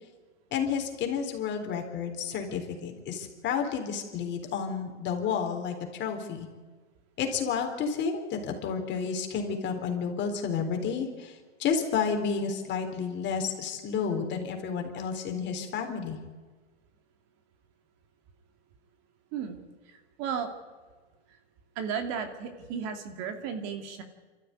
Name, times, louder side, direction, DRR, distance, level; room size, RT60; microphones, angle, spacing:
voice 1, 0.5-6.5 7.2-16.2, left 6 dB, 30° left, 4 dB, 3.9 m, -31 dB
voice 2, 20.2-20.5 21.8-24.0, right 7 dB, 45° right, 6 dB, 2.6 m, -34 dB
26.0 x 13.5 x 9.8 m, 1.4 s
hypercardioid pair, 125°, 35 cm